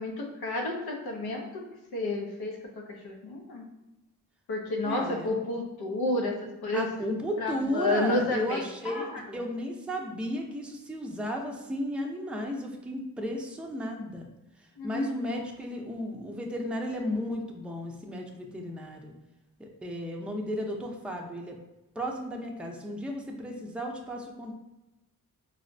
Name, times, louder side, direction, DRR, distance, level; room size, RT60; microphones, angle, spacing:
voice 1, 0.0-1.6 1.9-3.6 4.5-6.3 6.6-6.9 7.4-9.2 14.8-15.4, left 2 dB, 90° left, 1 dB, 0.6 m, -31 dB
voice 2, 4.8-5.3 6.7-14.3 14.8-19.1 19.6-21.6 22.0-24.5, equal, 5° right, 1 dB, 0.4 m, -34 dB
4.0 x 2.1 x 2.5 m, 0.99 s
cardioid pair, 50°, 36 cm